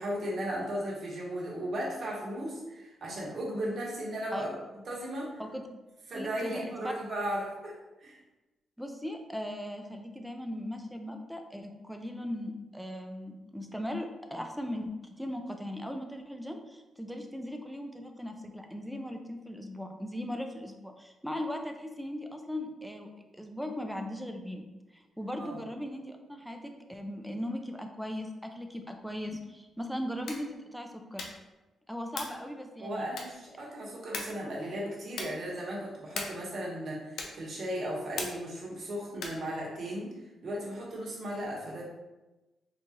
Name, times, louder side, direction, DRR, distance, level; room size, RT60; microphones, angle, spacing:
voice 1, 0.0-4.5 4.9-5.4 6.1-7.7 8.0-8.2 25.4-25.6 32.8-40.1 40.4-41.8, equal, 50° right, -4 dB, 1.1 m, -36 dB
voice 2, 6.1-6.9 8.8-23.1 23.4-24.6 24.9-31.2 31.9-33.1, left 1 dB, ahead, 4 dB, 0.4 m, -38 dB
sound 1, 30.2-30.5 31.1-31.5 32.1-32.5 33.1-33.5 34.1-34.5 35.1-35.5 36.1-36.5 37.1-37.5 38.1-38.6 39.1-39.5, left 3 dB, 80° left, 0.5 m, -39 dB
3.9 x 2.4 x 2.8 m, 1.1 s
cardioid pair, 115°, 0 cm